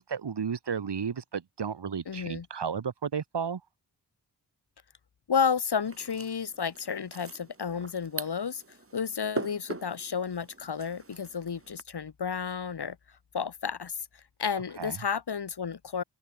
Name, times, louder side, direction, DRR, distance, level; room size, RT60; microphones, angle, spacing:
voice 1, 0.0-3.6 14.8-15.0, right 6 dB, 75° right, 3.7 m, -33 dB
voice 2, 2.1-2.4 5.3-13.0 13.3-13.9 14.4-16.0, left 6 dB, 70° left, 2.9 m, -31 dB
sound 1, 5.8-11.8, right 3 dB, 30° right, 4.0 m, -42 dB
open air
wide cardioid pair, 95°, 42 cm